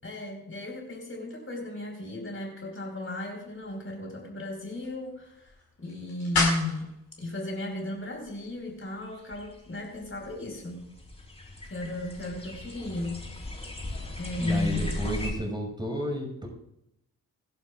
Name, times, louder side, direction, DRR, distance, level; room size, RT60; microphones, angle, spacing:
voice 1, 0.0-10.8 11.7-13.3 14.2-14.9, left 2 dB, 30° left, 0 dB, 4.7 m, -34 dB
sound 1, 3.4-8.5, left 3 dB, 80° left, 5.6 m, -35 dB
sound 2, 8.3-8.4 9.0-15.3, left 2 dB, 15° left, 3.4 m, -38 dB
voice 2, 14.4-16.5, equal, 10° right, 1 dB, 6.1 m, -32 dB
25.5 x 11.5 x 2.5 m, 0.82 s
hypercardioid pair, 45°, 43 cm